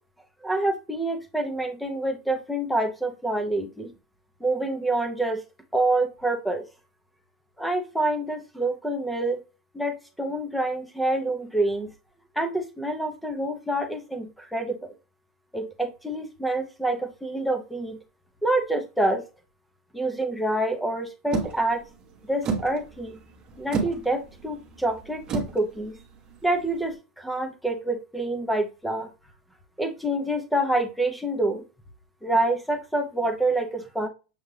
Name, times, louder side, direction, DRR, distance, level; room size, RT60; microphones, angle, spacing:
voice 1, 0.4-3.9 4.4-5.4 5.7-6.6 7.6-9.4 9.7-11.9 12.4-14.8 15.5-18.0 18.4-19.2 19.9-21.8 22.3-23.2 23.6-26.0 26.4-29.1 29.8-31.6 32.2-34.1, right 2 dB, ahead, 6 dB, 0.6 m, -27 dB
sound 1, 21.3-26.9, right 5 dB, 20° right, 0.9 m, -33 dB
6.6 x 2.4 x 3.1 m, 0.30 s
supercardioid pair, 170°, 4 cm